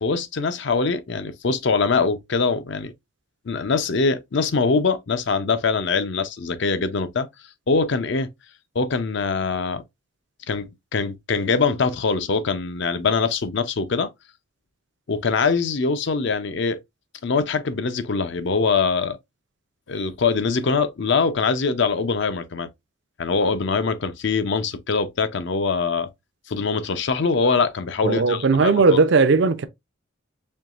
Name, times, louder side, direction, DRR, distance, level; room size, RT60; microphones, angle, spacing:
voice 1, 0.0-2.9 3.5-7.3 7.7-8.3 8.7-9.8 10.5-14.1 15.1-16.8 17.2-19.2 19.9-22.7 23.2-26.1 26.5-29.0, left 4 dB, 60° left, 0.5 m, -23 dB
voice 2, 28.0-29.7, right 4 dB, 55° right, 0.5 m, -17 dB
4.5 x 3.0 x 2.4 m
head